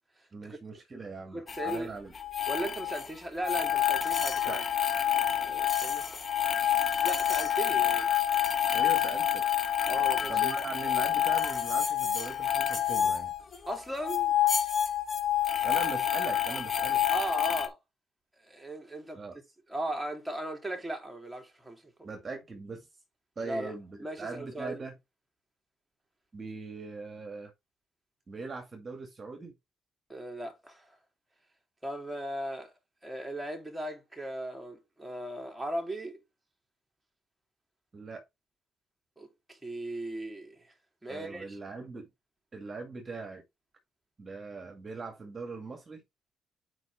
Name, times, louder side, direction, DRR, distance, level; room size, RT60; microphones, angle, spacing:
voice 1, 0.3-2.1 4.5-4.6 8.7-9.5 10.3-13.3 15.6-17.0 19.1-19.4 22.0-22.9 23.4-24.9 26.3-27.5 28.3-29.5 37.9-38.2 41.1-42.1 42.5-43.4 44.2-46.0, right 4 dB, 35° right, 2.1 m, -40 dB
voice 2, 1.3-1.9 2.5-4.6 5.1-6.0 6.8-8.1 9.9-10.5 13.7-14.3 17.1-17.8 18.5-19.2 19.7-22.1 23.4-23.7 24.0-24.8 30.1-30.9 31.8-32.7 33.0-36.2 39.2-40.6 41.0-41.6, right 1 dB, 10° right, 3.1 m, -37 dB
sound 1, 1.5-1.8 2.1-3.1 3.4-13.8 14.0-17.7, left 10 dB, 40° left, 1.3 m, -28 dB
7.8 x 5.1 x 3.5 m
cardioid pair, 90°, 0 cm